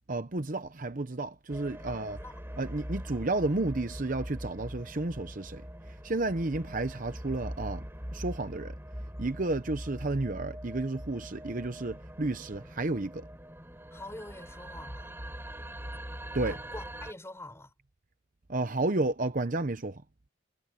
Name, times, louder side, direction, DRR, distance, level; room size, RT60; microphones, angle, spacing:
voice 1, 0.1-2.2 2.6-5.6 5.9-7.8 8.1-8.7 9.2-13.3 16.3-16.6 18.5-20.0, right 2 dB, 45° right, 0.9 m, -32 dB
sound 1, 1.5-17.1, equal, 10° right, 4.5 m, -42 dB
voice 2, 1.9-2.4 13.9-15.1 16.5-17.7, left 1 dB, 15° left, 6.3 m, -45 dB
head